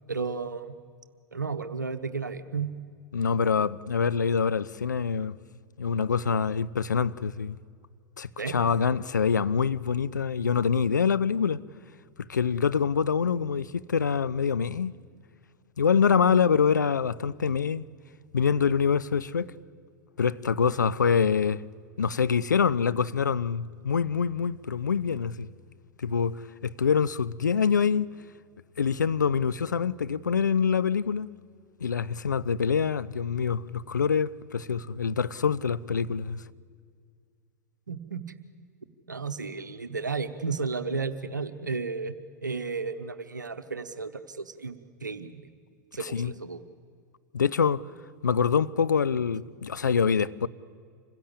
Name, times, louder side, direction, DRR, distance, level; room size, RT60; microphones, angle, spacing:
voice 1, 0.1-0.7 1.3-2.7 8.4-8.6 37.9-38.2 39.1-42.1 42.4-45.5 45.9-46.6, right 4 dB, 80° right, 1.0 m, -33 dB
voice 2, 3.1-5.4 5.8-7.6 8.2-11.6 12.3-14.9 15.8-17.8 18.3-19.5 20.2-21.6 22.0-25.5 26.0-28.1 28.8-31.3 31.8-36.4 46.0-46.3 47.3-47.8 48.2-50.5, left 6 dB, 75° left, 0.5 m, -25 dB
26.0 x 16.5 x 8.5 m
figure-of-eight pair, 95°, 10 cm